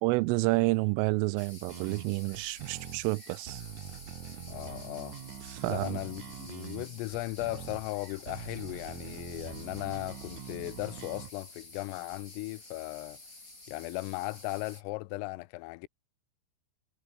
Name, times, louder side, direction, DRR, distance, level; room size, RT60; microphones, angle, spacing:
voice 1, 0.0-3.6 5.5-6.0, right 25 dB, 85° right, 3.0 m, -29 dB
sound 1, 1.4-14.8, left 2 dB, 15° left, 6.7 m, -51 dB
sound 2, 1.7-11.3, right 10 dB, 60° right, 2.1 m, -44 dB
voice 2, 4.5-5.2 5.7-13.2 13.7-15.9, left 22 dB, 90° left, 3.3 m, -37 dB
omnidirectional pair, 5.8 m